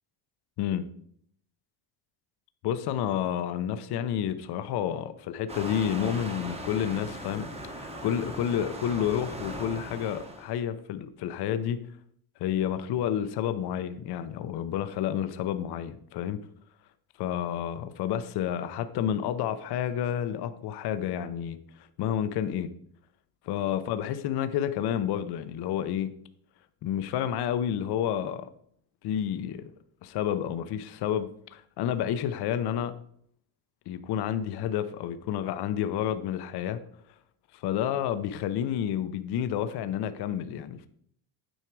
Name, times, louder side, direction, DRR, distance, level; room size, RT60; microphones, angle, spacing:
voice 1, 2.6-11.8 12.4-16.4 17.2-21.6 22.0-22.7 23.4-26.1 26.8-28.5 29.0-29.7 30.0-32.9 33.9-36.8 37.5-40.9, left 10 dB, 55° left, 0.6 m, -30 dB
Waves surf, 5.5-10.6, right 1 dB, 10° right, 0.9 m, -39 dB
9.0 x 4.8 x 4.6 m
cardioid pair, 160°, 49 cm